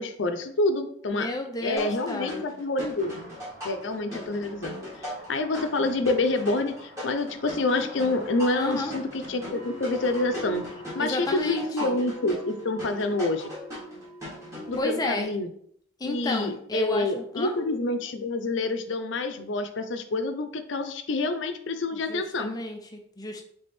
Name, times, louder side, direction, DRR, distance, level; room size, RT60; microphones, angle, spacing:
voice 1, 0.0-1.3 1.6-3.3 3.6-10.6 10.9-13.5 14.7-15.5 16.0-22.5, left 2 dB, 70° left, 7 dB, 0.5 m, -28 dB
voice 2, 1.1-2.4 8.5-8.9 11.0-12.0 14.8-15.3 16.0-17.5 21.9-23.4, left 2 dB, 20° left, 3 dB, 0.5 m, -31 dB
sound 1, 1.8-14.8, left 1 dB, 15° right, 1.5 m, -39 dB
sound 2, 3.0-11.0, equal, 85° right, 1.4 m, -47 dB
sound 3, 9.5-15.2, equal, ahead, 1.3 m, -45 dB
3.5 x 3.4 x 4.2 m, 0.65 s
head